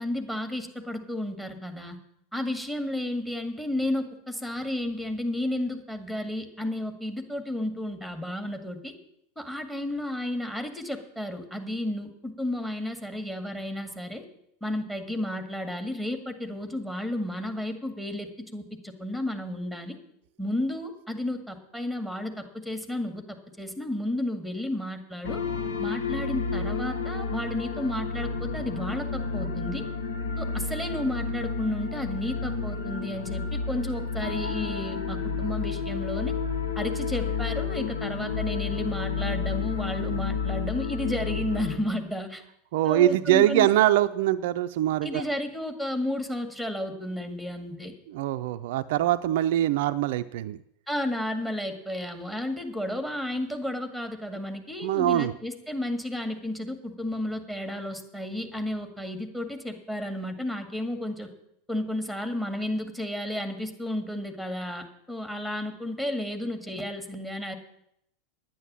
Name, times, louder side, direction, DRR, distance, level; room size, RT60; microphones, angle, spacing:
voice 1, 0.0-2.0 2.3-8.9 9.4-14.2 14.6-20.0 20.4-25.4 25.8-29.8 30.4-36.3 36.8-42.4 42.8-43.7 45.0-47.9 50.9-61.3 61.7-67.5, left 1 dB, 5° left, 8 dB, 1.9 m, -32 dB
sound 1, 25.2-41.8, left 5 dB, 80° left, 1.6 m, -31 dB
voice 2, 42.7-45.2 48.1-50.6 54.8-55.3, right 13 dB, 60° right, 10 dB, 0.4 m, -23 dB
10.0 x 9.4 x 7.4 m, 0.77 s
hypercardioid pair, 90°, 0 cm